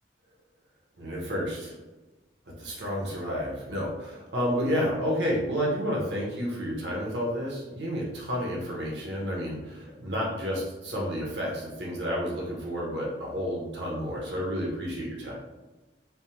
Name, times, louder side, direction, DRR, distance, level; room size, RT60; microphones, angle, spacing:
voice 1, 1.0-1.7 2.6-15.4, equal, 80° right, -3 dB, 0.9 m, -30 dB
3.3 x 2.1 x 2.8 m, 1.1 s
head